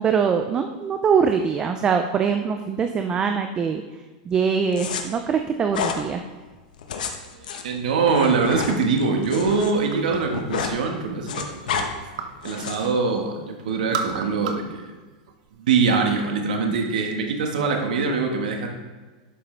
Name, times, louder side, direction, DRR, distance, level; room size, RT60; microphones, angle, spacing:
voice 1, 0.0-3.8 4.3-6.2, right 6 dB, 20° right, 6 dB, 0.4 m, -23 dB
sound 1, 4.7-5.0 5.7-6.0 6.7-9.7 10.0-10.8 11.0-11.9 12.4-12.9, left 7 dB, 85° left, 1.1 m, -30 dB
voice 2, 7.3-11.9 12.4-14.9 15.6-18.7, right 4 dB, 85° right, 3 dB, 1.4 m, -23 dB
sound 2, 9.9-10.4 10.8-12.5 12.8-13.4 13.7-14.8 15.1-15.9, right 6 dB, 60° right, 0.8 m, -33 dB
11.0 x 6.3 x 3.3 m, 1.3 s
supercardioid pair, 155°, 4 cm